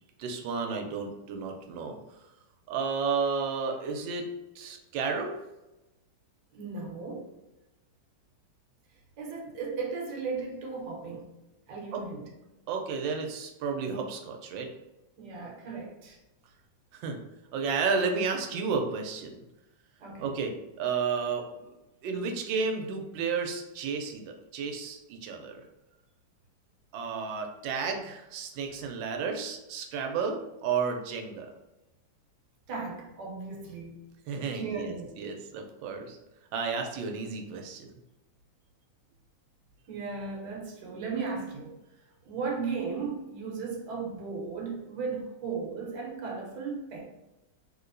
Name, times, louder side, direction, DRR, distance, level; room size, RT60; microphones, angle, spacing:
voice 1, 0.2-2.0 2.7-4.3 4.6-5.3 11.9-12.0 12.7-14.7 16.9-17.2 17.5-19.4 20.2-21.7 22.0-24.2 24.5-25.6 26.9-31.5 34.3-36.2 36.5-37.9, right 5 dB, 90° right, 1.3 m, -32 dB
voice 2, 6.5-7.3 9.2-11.3 11.7-12.3 15.2-16.2 20.0-20.4 32.7-34.0 34.5-35.1 39.9-41.8 42.2-47.0, right 4 dB, 70° right, 1.3 m, -36 dB
3.4 x 2.9 x 2.5 m
omnidirectional pair, 2.0 m